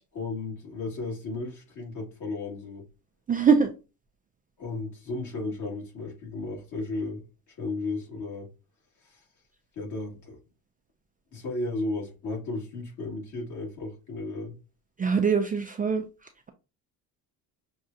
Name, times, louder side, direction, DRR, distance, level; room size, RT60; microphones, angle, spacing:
voice 1, 0.1-2.8 4.6-7.2 7.6-8.5 9.0-9.2 9.7-10.4 11.3-14.5, left 2 dB, 50° left, 2.1 m, -34 dB
voice 2, 3.3-3.7 15.0-16.1, right 6 dB, 20° right, 0.4 m, -22 dB
6.2 x 2.3 x 2.7 m
cardioid pair, 115°, 39 cm